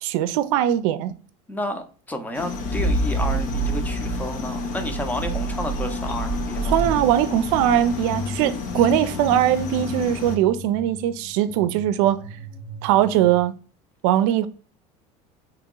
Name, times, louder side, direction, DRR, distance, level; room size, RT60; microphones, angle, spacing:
voice 1, 0.0-1.1 6.7-12.2 12.8-13.5 14.0-14.5, right 11 dB, 85° right, 0.4 m, -20 dB
voice 2, 1.5-6.8, left 1 dB, 10° left, 0.6 m, -31 dB
sound 1, 2.3-10.4, left 5 dB, 55° left, 0.7 m, -32 dB
sound 2, 2.4-13.4, right 2 dB, 85° left, 1.1 m, -30 dB
2.9 x 2.9 x 3.7 m
cardioid pair, 120°, 16 cm